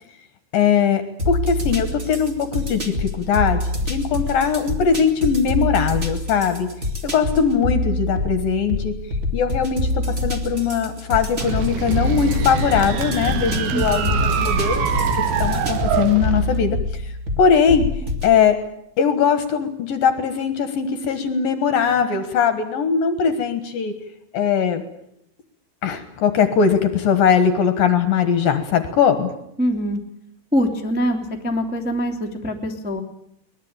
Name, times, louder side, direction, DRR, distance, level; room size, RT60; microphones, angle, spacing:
voice 1, 0.5-6.7 7.0-8.9 9.3-14.9 15.4-17.9 18.2-18.6 19.0-23.9 24.3-24.8 25.8-29.3, left 7 dB, 65° left, 9 dB, 2.5 m, -20 dB
sound 1, 1.2-18.3, left 1 dB, 30° right, 1.3 m, -26 dB
sound 2, 11.4-16.6, right 2 dB, 60° right, 4.0 m, -27 dB
sound 3, 11.8-16.2, right 8 dB, 80° right, 4.1 m, -26 dB
voice 2, 13.7-14.1 29.6-30.0 30.5-33.0, equal, 10° right, 1 dB, 0.5 m, -23 dB
23.0 x 20.5 x 8.8 m, 0.75 s
omnidirectional pair, 5.7 m